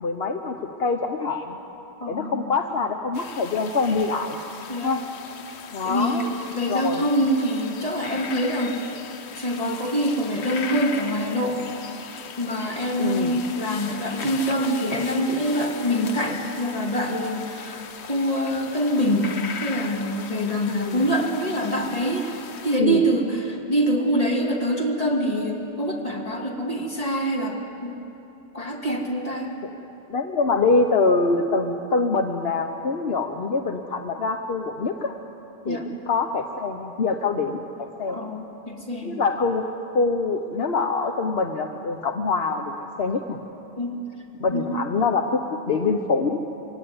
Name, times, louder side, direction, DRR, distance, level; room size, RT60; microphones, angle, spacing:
voice 1, 0.0-1.6 2.1-4.4 4.8-5.0 5.7-6.2 6.7-7.1 13.0-13.3 20.7-21.0 22.8-23.0 29.6-29.7 30.1-35.1 35.6-38.2 39.0-39.6 39.9-42.7 43.0-43.4 44.4-46.4, left 4 dB, 70° left, 4 dB, 1.2 m, -24 dB
voice 2, 2.0-2.5 4.7-4.9 5.8-8.9 9.4-11.7 12.4-28.0 28.5-29.5 35.6-35.9 38.1-39.2 43.8-44.0 44.5-44.8, equal, 35° left, 0 dB, 2.6 m, -25 dB
sound 1, 3.1-22.8, left 6 dB, 90° left, 1.1 m, -38 dB
24.0 x 17.0 x 9.6 m, 2.9 s
omnidirectional pair, 1.1 m